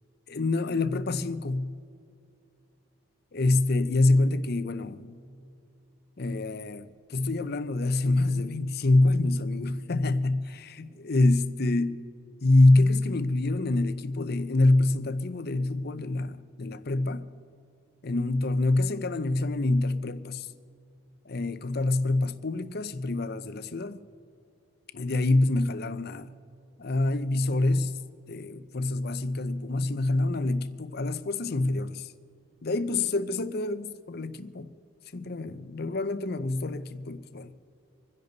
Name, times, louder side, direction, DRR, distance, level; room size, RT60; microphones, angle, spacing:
voice 1, 0.3-1.8 3.3-5.2 6.2-12.0 12.4-17.3 18.0-20.5 21.2-24.0 24.9-26.3 26.8-28.0 28.3-32.1 32.6-34.7 35.1-37.5, left 2 dB, 45° left, 0.6 m, -26 dB
26.0 x 10.5 x 4.0 m
head